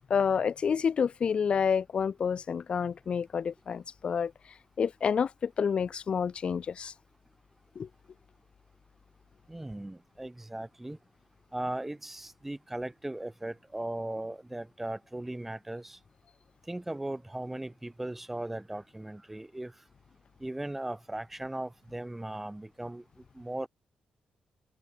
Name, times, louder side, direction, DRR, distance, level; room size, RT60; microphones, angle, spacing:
voice 1, 0.1-4.3 4.8-6.9 7.8-7.9, left 6 dB, 45° left, 2.2 m, -29 dB
voice 2, 9.5-11.0 11.5-16.0 16.7-19.7 20.4-23.0 23.3-23.7, right 1 dB, 10° right, 3.3 m, -38 dB
wide cardioid pair, 150°, 3 cm